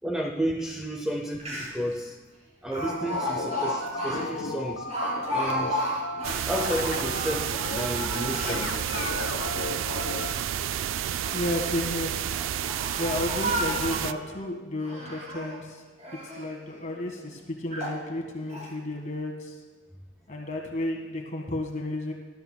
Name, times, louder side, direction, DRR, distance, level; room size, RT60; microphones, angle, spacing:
voice 1, 0.0-2.2 2.6-4.9 5.3-5.9 6.5-8.8, right 1 dB, 5° right, 1 dB, 0.6 m, -32 dB
Speech, 1.1-1.2 1.4-1.9 2.7-6.6 7.0-8.7 9.2-10.0 10.9-11.5 12.2-14.2 14.8-15.6 16.0-16.5 17.1-17.2 17.7-18.0 18.5-18.7, equal, 35° right, 2.8 m, -34 dB
sound 1, 2.7-10.3, left 2 dB, 85° left, 1.0 m, -34 dB
sound 2, 6.2-14.1, right 9 dB, 90° right, 0.3 m, -30 dB
voice 2, 11.3-12.1 13.0-15.8 16.3-19.6 20.3-22.1, left 1 dB, 40° left, 1 dB, 1.7 m, -32 dB
19.0 x 12.5 x 2.3 m, 1.4 s
head